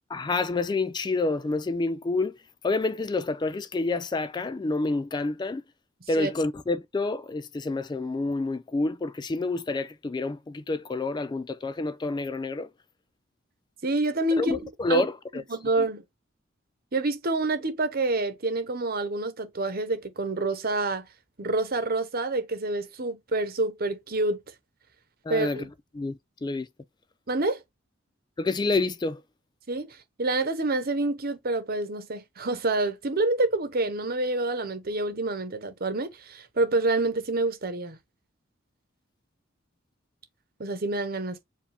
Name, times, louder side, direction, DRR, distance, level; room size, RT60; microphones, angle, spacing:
voice 1, 0.1-2.4 2.6-5.6 6.1-12.7 14.4-15.4 15.8-15.9 25.3-25.7 25.9-26.7 28.4-29.2, left 3 dB, 20° left, 0.3 m, -28 dB
voice 2, 13.8-15.1 15.5-16.0 16.9-21.0 21.4-24.4 25.3-25.7 27.3-27.6 29.7-38.0 40.6-41.4, right 2 dB, 50° right, 1.0 m, -27 dB
4.8 x 2.6 x 3.4 m
head